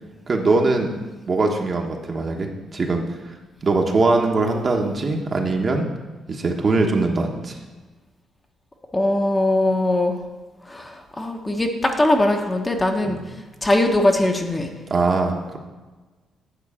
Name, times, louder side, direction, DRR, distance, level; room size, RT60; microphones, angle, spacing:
voice 1, 0.3-0.9 1.3-3.0 3.6-5.9 6.3-7.6 13.0-13.2 14.9-15.6, right 3 dB, 40° right, 2 dB, 1.2 m, -21 dB
voice 2, 8.9-10.2 10.7-13.2 13.6-14.7, left 1 dB, 15° left, 3 dB, 1.0 m, -20 dB
9.0 x 3.9 x 7.2 m, 1.3 s
cardioid pair, 90°, 0 cm